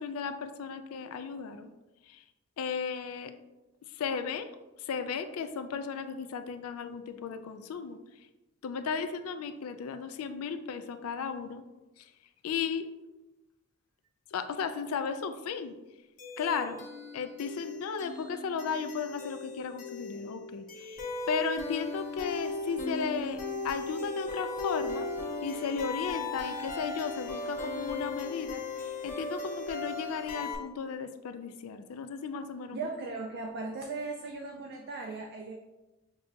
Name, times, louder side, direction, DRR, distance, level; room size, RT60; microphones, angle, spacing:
voice 1, 0.0-1.7 2.1-2.2 2.6-3.3 4.0-4.5 4.8-8.0 8.6-11.6 12.0-12.1 12.4-12.8 14.3-15.7 16.4-16.9 17.1-21.0 21.3-25.1 25.4-32.8, left 6 dB, 90° left, 9 dB, 0.4 m, -35 dB
sound 1, 16.2-30.6, left 3 dB, 35° left, 0.7 m, -37 dB
voice 2, 32.7-35.6, right 3 dB, 45° right, 2 dB, 0.3 m, -38 dB
6.6 x 2.3 x 2.7 m, 1.0 s
head